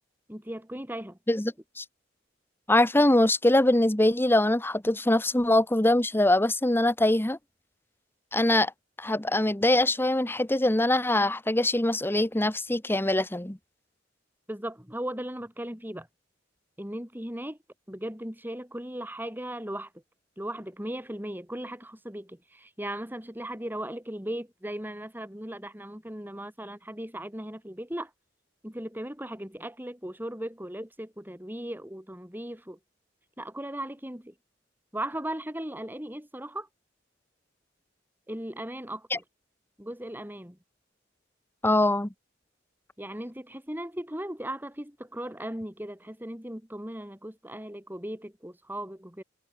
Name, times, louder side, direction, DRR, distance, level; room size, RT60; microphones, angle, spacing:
voice 1, 0.3-1.2 14.5-16.1 16.8-17.6 17.9-19.9 20.4-28.1 28.6-32.8 33.4-34.3 34.9-36.7 38.3-39.2 39.8-40.6 43.0-49.2, right 1 dB, 10° right, 6.2 m, -37 dB
voice 2, 1.3-1.8 2.7-7.4 8.3-8.7 9.0-13.6 39.1-39.2 41.6-42.1, left 1 dB, 10° left, 1.1 m, -23 dB
head